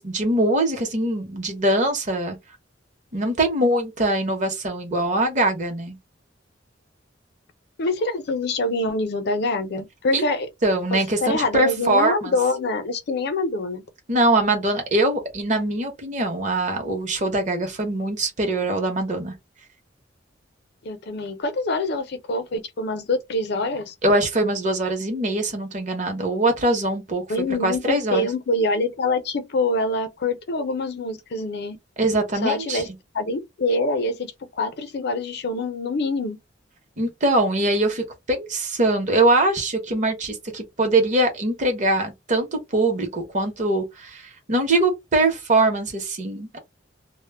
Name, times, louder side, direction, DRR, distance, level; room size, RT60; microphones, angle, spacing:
voice 1, 0.0-2.4 3.1-6.0 10.1-10.3 10.6-12.3 14.1-19.4 24.0-27.2 27.6-28.3 32.0-32.8 37.0-46.6, right 2 dB, 40° right, 0.8 m, -22 dB
voice 2, 7.8-10.5 10.9-13.8 20.8-23.9 27.3-31.8 32.4-32.9 33.1-34.3 34.6-36.4, left 2 dB, 60° left, 0.5 m, -25 dB
2.1 x 2.0 x 3.3 m
head